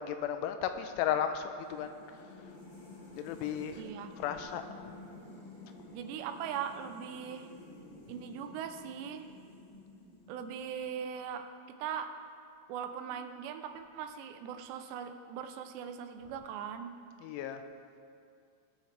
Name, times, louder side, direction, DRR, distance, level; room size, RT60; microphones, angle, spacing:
voice 1, 0.0-1.9 3.2-3.8 4.2-4.6 17.2-17.6, left 9 dB, 85° left, 8 dB, 2.7 m, -34 dB
sound 1, 1.6-10.9, left 2 dB, 60° left, 1.6 m, -52 dB
voice 2, 3.8-4.1 5.9-7.5 8.1-9.3 10.3-12.1 12.7-16.9, right 8 dB, 90° right, 7 dB, 2.9 m, -40 dB
19.0 x 6.4 x 3.3 m, 2.3 s
omnidirectional pair, 4.8 m